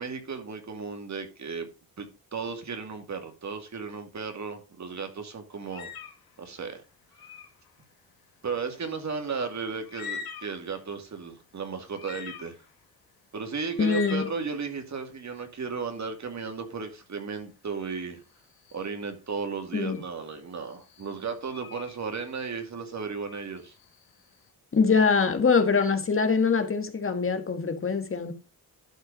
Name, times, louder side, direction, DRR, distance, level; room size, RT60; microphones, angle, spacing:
voice 1, 0.0-1.7 2.0-5.9 6.4-6.8 8.4-12.6 13.3-18.2 18.7-23.7, right 5 dB, 50° right, 2.5 m, -35 dB
sound 1, 5.6-6.3 7.1-7.6 9.5-9.6 9.8-10.7 11.3-11.4 11.9-12.8 13.7-14.4 17.7-18.0 18.7-19.0 19.7-20.1 20.7-22.0 23.1-24.2, left 6 dB, 75° left, 1.9 m, -42 dB
voice 2, 13.8-14.3 19.7-20.0 24.7-28.3, left 5 dB, 35° left, 1.6 m, -23 dB
12.0 x 4.7 x 5.3 m
cardioid pair, 80°, 36 cm